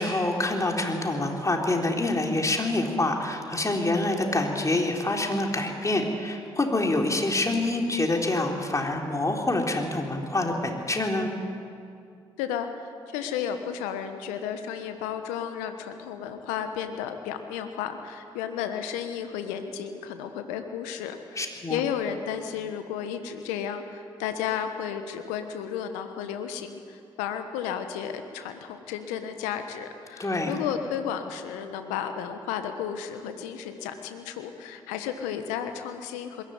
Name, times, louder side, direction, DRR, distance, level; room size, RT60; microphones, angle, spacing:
voice 1, 0.0-11.3 21.4-21.8 30.2-30.5, left 2 dB, 25° left, 1 dB, 3.8 m, -26 dB
voice 2, 12.4-36.4, left 8 dB, 80° left, 7 dB, 1.3 m, -33 dB
21.5 x 16.0 x 9.6 m, 2.4 s
hypercardioid pair, 40°, 12 cm